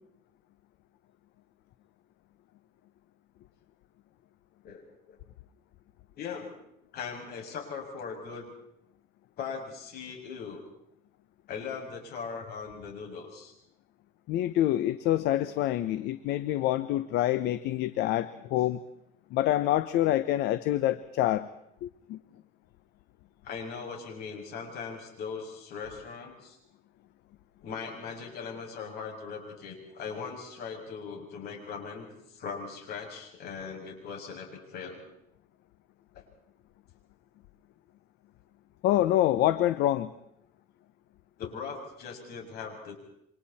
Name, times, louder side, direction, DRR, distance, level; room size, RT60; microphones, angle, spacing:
voice 1, 4.6-5.2 6.2-6.6 6.9-8.5 9.4-10.6 11.5-13.5 23.4-26.6 27.6-35.0 36.1-36.2 41.4-43.0, left 5 dB, 70° left, 2 dB, 6.8 m, -39 dB
voice 2, 14.3-18.8 19.3-21.5 21.8-22.2 38.8-40.1, left 13 dB, 85° left, 13 dB, 0.9 m, -26 dB
28.5 x 25.5 x 4.3 m, 0.76 s
cardioid pair, 110°, 17 cm